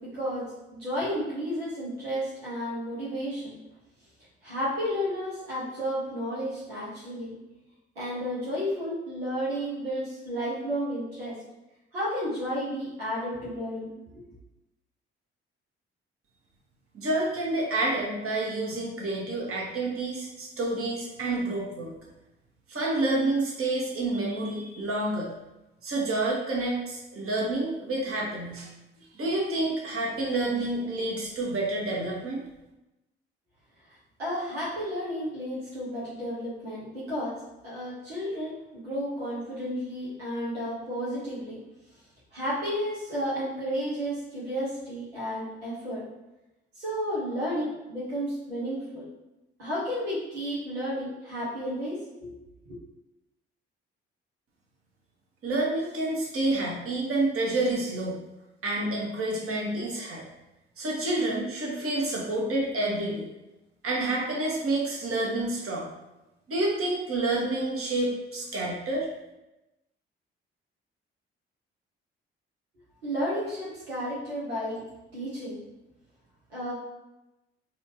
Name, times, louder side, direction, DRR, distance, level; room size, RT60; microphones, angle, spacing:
voice 1, 0.1-3.6 4.4-7.3 8.0-11.4 11.9-14.2 34.2-37.3 37.6-41.6 42.3-46.0 46.8-49.1 49.6-52.4 52.7-52.8 73.0-74.8 75.1-75.6 76.5-76.7, equal, 90° right, -8 dB, 0.9 m, -32 dB
voice 2, 16.9-21.9 22.7-25.3 25.8-28.7 29.1-32.4 55.4-58.2 58.6-60.2 60.8-63.2 63.8-65.9 66.5-69.1, right 2 dB, 50° right, -3 dB, 1.2 m, -28 dB
4.2 x 2.5 x 2.9 m, 0.98 s
figure-of-eight pair, 45°, 30 cm